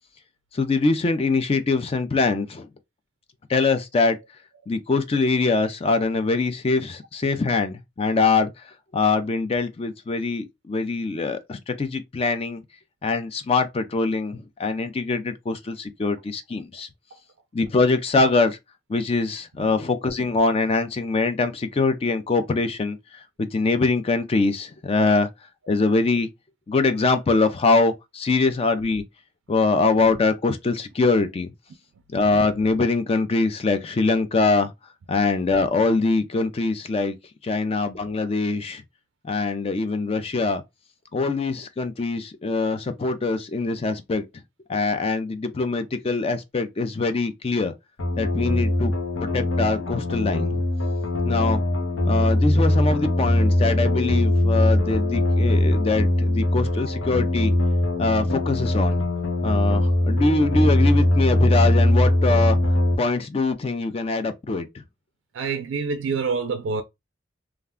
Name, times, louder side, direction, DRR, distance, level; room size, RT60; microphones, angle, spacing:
voice 1, 0.5-2.7 3.5-4.2 4.7-8.5 8.9-12.6 13.0-16.9 17.5-18.6 18.9-23.0 23.4-25.3 25.7-26.3 26.7-29.0 29.5-31.5 32.1-34.7 35.1-37.2 37.4-38.8 39.2-40.6 41.1-44.2 44.7-47.7 48.2-48.9 49.2-50.6 51.2-51.6 52.1-57.5 58.0-59.0 59.4-62.6 63.0-64.7, left 3 dB, 30° left, 0.4 m, -23 dB
sound 1, 48.0-63.0, left 1 dB, 80° left, 0.8 m, -21 dB
voice 2, 65.3-66.8, right 5 dB, 70° right, 0.4 m, -27 dB
2.4 x 2.2 x 3.5 m
head